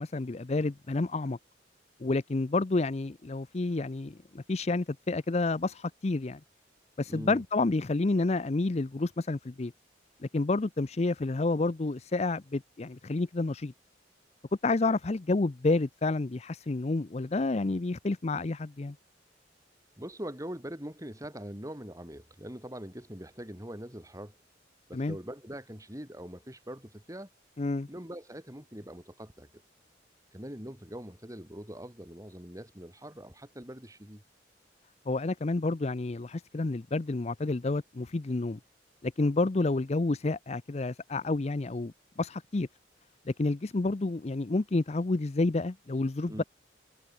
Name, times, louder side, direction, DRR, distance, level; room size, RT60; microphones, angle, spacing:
voice 1, 0.0-1.4 2.0-6.4 7.0-9.7 10.3-13.7 14.6-19.0 24.9-25.2 27.6-27.9 35.1-38.6 39.0-42.7 43.3-46.4, left 2 dB, 35° left, 0.5 m, -29 dB
voice 2, 7.1-7.4 20.0-24.4 24.9-27.3 27.9-29.5 30.3-34.2 46.2-46.4, equal, 20° right, 4.6 m, -42 dB
head